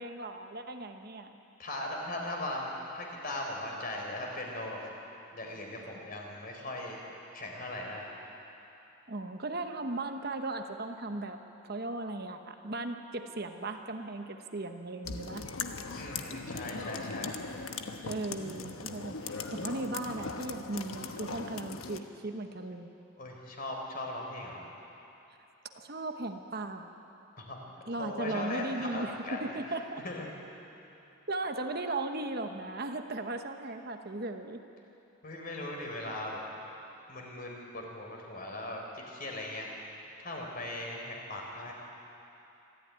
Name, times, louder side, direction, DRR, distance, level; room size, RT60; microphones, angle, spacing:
voice 1, 0.0-1.4 9.1-15.4 18.0-22.9 25.7-26.9 27.9-30.0 31.3-34.6, right 2 dB, 45° right, 5 dB, 1.0 m, -37 dB
voice 2, 1.6-4.8 5.3-7.0 7.3-8.1 16.0-17.3 23.2-24.6 27.4-29.5 30.0-30.3 35.2-36.4 37.1-41.7, left 1 dB, 40° left, 0 dB, 4.1 m, -39 dB
sound 1, 15.0-22.0, left 4 dB, 75° left, 1.2 m, -39 dB
25.5 x 14.0 x 9.6 m, 2.9 s
head